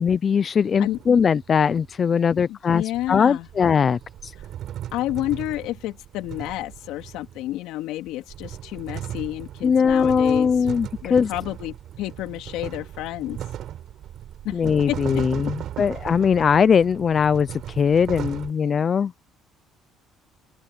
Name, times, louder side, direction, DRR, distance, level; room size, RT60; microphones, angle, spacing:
voice 1, 0.0-4.3 9.6-11.3 14.5-19.1, left 6 dB, 35° left, 0.4 m, -20 dB
sound 1, 0.6-1.9 2.9-7.5 8.1-18.5, right 11 dB, 55° right, 6.5 m, -37 dB
voice 2, 2.5-3.5 4.9-10.5 11.0-13.4 14.4-14.6 14.9-15.2, left 15 dB, 80° left, 3.3 m, -30 dB
open air
cardioid pair, 140°, 0 cm